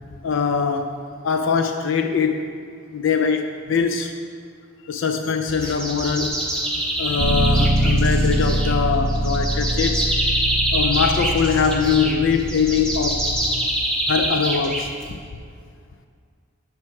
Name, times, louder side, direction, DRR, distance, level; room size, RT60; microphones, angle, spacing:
voice 1, 0.2-1.0 1.2-2.4 2.9-4.1 4.9-6.4 7.0-10.0 10.7-13.3 14.1-15.2, left 6 dB, 65° left, 6 dB, 0.4 m, -22 dB
sound 1, 5.5-15.3, right 1 dB, 5° left, 0.8 m, -25 dB
Bass guitar, 7.2-13.4, right 1 dB, 50° right, 0.8 m, -23 dB
7.5 x 4.8 x 5.8 m, 2.1 s
head